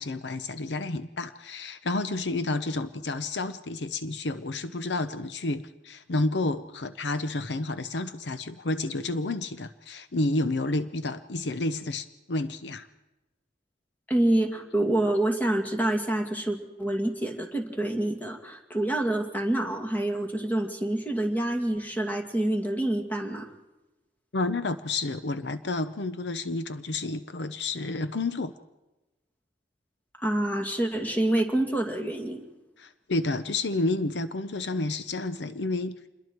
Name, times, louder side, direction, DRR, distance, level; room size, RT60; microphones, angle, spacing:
voice 1, 0.0-12.9 24.3-28.5 32.8-36.1, left 2 dB, 70° left, 11 dB, 0.8 m, -30 dB
voice 2, 14.1-23.5 30.2-32.5, right 1 dB, 10° left, 3 dB, 2.2 m, -27 dB
27.5 x 21.5 x 4.6 m, 1.0 s
head